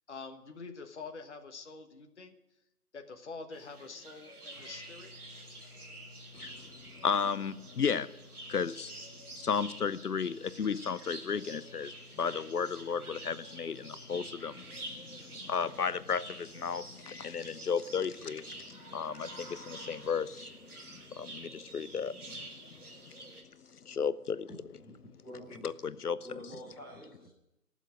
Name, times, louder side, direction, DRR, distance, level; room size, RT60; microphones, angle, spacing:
voice 1, 0.1-2.3 2.9-5.1, left 4 dB, 45° left, 1.3 m, -46 dB
sound 1, 3.5-23.4, right 2 dB, 65° right, 3.6 m, -49 dB
sound 2, 4.5-17.3, left 3 dB, 15° right, 2.9 m, -57 dB
voice 2, 7.0-8.1 8.5-8.9 9.4-22.5 23.1-23.2 23.8-24.5 25.6-26.2, left 6 dB, 70° left, 0.7 m, -34 dB
voice 3, 24.5-25.6 26.2-27.3, equal, ahead, 1.5 m, -48 dB
15.0 x 7.3 x 9.7 m
figure-of-eight pair, 155°, 47 cm